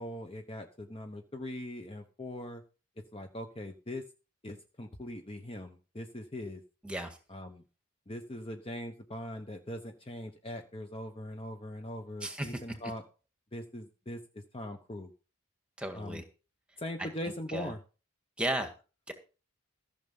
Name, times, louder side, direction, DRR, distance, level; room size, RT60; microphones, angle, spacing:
voice 1, 0.0-2.6 3.1-4.0 4.4-6.6 7.3-7.6 8.1-13.0 13.5-14.2 14.5-15.1 15.9-16.2 16.8-17.8, left 1 dB, 25° left, 5 dB, 0.9 m, -41 dB
voice 2, 6.8-7.2 12.2-12.6 15.8-16.2 17.0-17.7 18.4-18.7 19.1-19.2, right 1 dB, 5° right, 6 dB, 1.8 m, -35 dB
14.5 x 6.7 x 5.4 m, 0.34 s
head